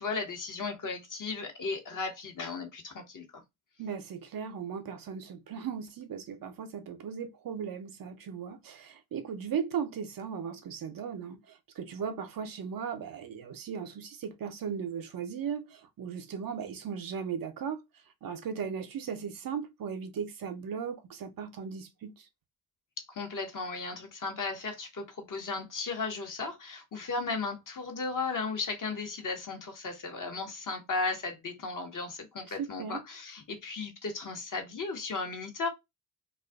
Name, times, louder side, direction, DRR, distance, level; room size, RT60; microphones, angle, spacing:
voice 1, 0.0-3.4 23.1-35.7, left 4 dB, 40° left, 1.0 m, -35 dB
voice 2, 3.8-17.8 18.2-22.1 32.5-33.0, right 7 dB, 50° right, 0.6 m, -37 dB
2.4 x 2.3 x 2.3 m
hypercardioid pair, 45°, 46 cm